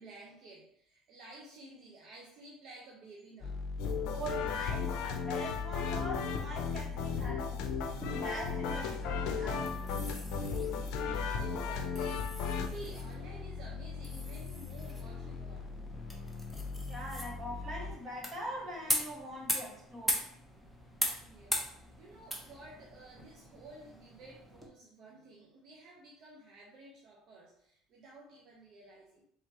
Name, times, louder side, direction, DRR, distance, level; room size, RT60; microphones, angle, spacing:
voice 1, 0.0-3.7 11.0-15.7 21.3-29.2, right 2 dB, 55° right, -3 dB, 1.0 m, -53 dB
sound 1, 3.4-18.0, left 4 dB, 35° left, 0.9 m, -41 dB
sound 2, 3.8-12.7, left 6 dB, 70° left, 0.5 m, -36 dB
voice 2, 4.0-7.8 8.1-9.8 16.9-20.2, equal, 30° right, -2 dB, 1.6 m, -43 dB
sound 3, 7.8-24.7, equal, 5° right, 0.9 m, -41 dB
4.6 x 3.6 x 3.0 m, 0.65 s
cardioid pair, 115°, 0 cm